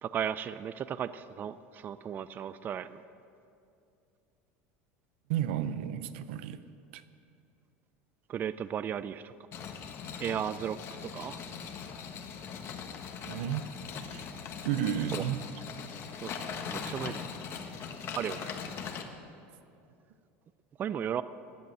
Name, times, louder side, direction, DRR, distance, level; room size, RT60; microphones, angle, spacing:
voice 1, 0.0-3.0 8.3-9.3 10.2-11.4 15.1-15.2 16.2-17.3 18.1-18.5 20.8-21.2, right 9 dB, 30° right, 0.4 m, -35 dB
voice 2, 5.3-6.6 6.9-7.0 13.2-13.7 14.1-14.3 14.6-15.4, right 10 dB, 80° right, 0.7 m, -32 dB
sound 1, 9.5-19.0, left 6 dB, 45° left, 1.3 m, -40 dB
14.0 x 9.5 x 7.8 m
supercardioid pair, 120°, 6 cm